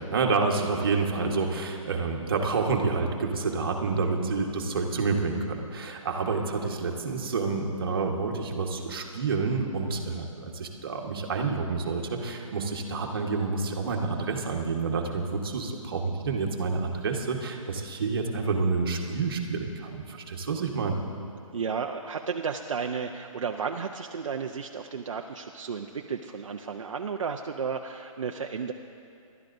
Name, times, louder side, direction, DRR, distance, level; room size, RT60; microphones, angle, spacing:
voice 1, 0.0-20.9, right 4 dB, 40° right, 1 dB, 1.3 m, -28 dB
voice 2, 21.5-28.7, right 6 dB, 65° right, 3 dB, 0.6 m, -33 dB
25.0 x 12.0 x 2.6 m, 2.5 s
hypercardioid pair, 170°, 18 cm